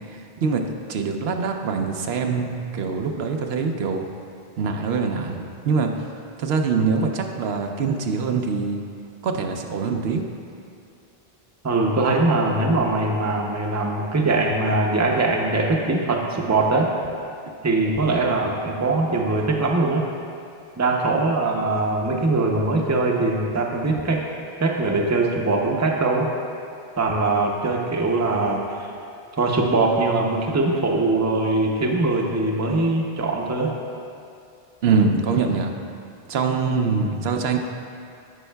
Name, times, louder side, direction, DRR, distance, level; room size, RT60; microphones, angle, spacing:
voice 1, 0.9-4.1 4.6-5.9 6.4-8.8 9.2-10.2 34.8-35.7 36.3-37.6, right 5 dB, 80° right, 4 dB, 0.9 m, -23 dB
voice 2, 11.6-16.9 17.6-20.0 20.8-24.2 24.6-26.3 27.0-28.9 29.4-33.7, right 2 dB, 20° right, 0 dB, 0.5 m, -22 dB
15.5 x 5.4 x 2.3 m, 2.5 s
omnidirectional pair, 1.0 m